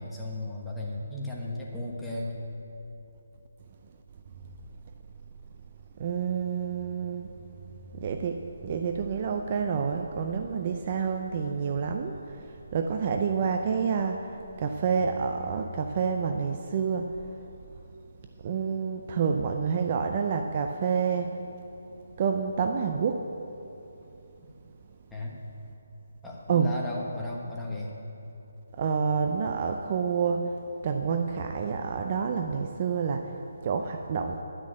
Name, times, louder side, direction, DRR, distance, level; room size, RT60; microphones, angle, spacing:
voice 1, 0.0-2.4 25.1-25.4 26.2-27.9, left 2 dB, 5° left, -5 dB, 1.2 m, -35 dB
voice 2, 6.0-7.3 8.0-12.1 12.7-14.3 14.6-17.1 18.4-21.4 22.2-23.2 26.5-26.8 28.8-30.5 30.8-33.2 33.6-34.4, right 6 dB, 30° right, 5 dB, 0.5 m, -28 dB
10.5 x 6.3 x 8.8 m, 2.9 s
hypercardioid pair, 170°, 0 cm